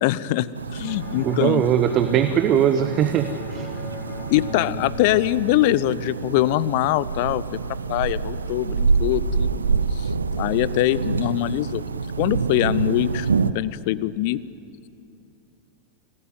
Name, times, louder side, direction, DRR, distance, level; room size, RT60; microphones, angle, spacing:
voice 1, 0.0-1.6 4.3-7.4 7.9-9.6 10.0-10.1 10.4-11.8 12.2-13.3 13.5-14.4, left 15 dB, 50° left, 19 dB, 0.8 m, -23 dB
sound 1, 0.5-13.5, right 4 dB, 75° right, 0.8 m, -27 dB
Bowed string instrument, 0.8-5.8, left 3 dB, 30° left, 5.7 m, -38 dB
voice 2, 1.2-3.7, right 9 dB, 35° right, 11 dB, 1.0 m, -20 dB
28.0 x 18.0 x 9.6 m, 2.7 s
figure-of-eight pair, 90°, 0 cm